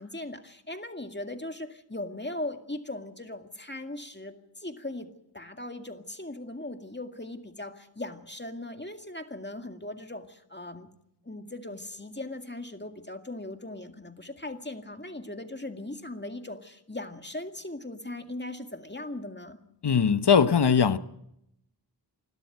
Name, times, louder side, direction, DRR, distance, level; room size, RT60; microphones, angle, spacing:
voice 1, 0.0-10.9 11.2-19.6, left 1 dB, 25° left, 2.1 m, -39 dB
voice 2, 19.8-21.0, left 6 dB, 70° left, 0.9 m, -20 dB
28.5 x 12.5 x 9.2 m
wide cardioid pair, 50°, 42 cm